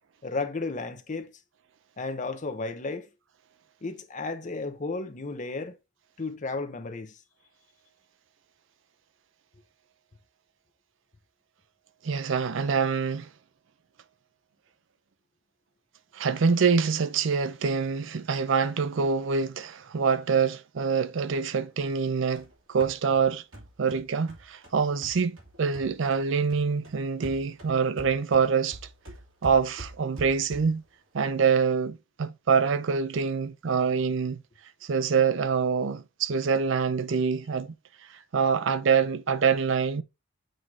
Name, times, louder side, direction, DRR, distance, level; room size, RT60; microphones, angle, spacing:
voice 1, 0.2-1.3 2.0-3.1 3.8-5.8 6.2-7.2, left 3 dB, 40° left, 0.8 m, -33 dB
voice 2, 12.0-13.3 16.1-23.4 23.8-28.8 29.4-30.8 31.1-34.4 34.8-37.7 38.3-40.0, right 5 dB, 65° right, 0.5 m, -25 dB
sound 1, 22.0-26.2 26.5-30.9, right 1 dB, 85° right, 2.1 m, -46 dB
7.7 x 2.6 x 4.7 m
head